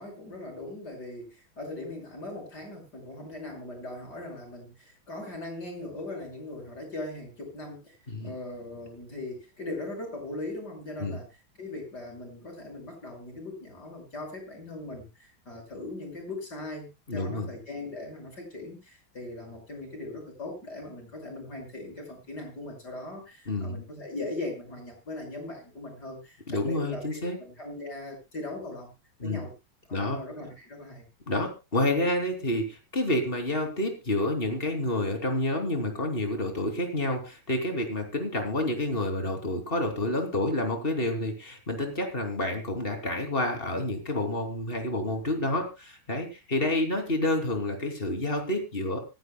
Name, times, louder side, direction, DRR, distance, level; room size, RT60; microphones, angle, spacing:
voice 1, 0.0-11.3 11.6-28.9 29.2-29.5 29.9-31.0, left 2 dB, 50° left, 2 dB, 6.1 m, -39 dB
voice 2, 17.1-17.5 23.5-23.8 26.5-27.4 29.2-29.5 29.9-30.2 31.3-49.0, left 1 dB, 25° left, 4 dB, 3.1 m, -29 dB
25.5 x 10.5 x 2.2 m, 0.27 s
omnidirectional pair, 2.3 m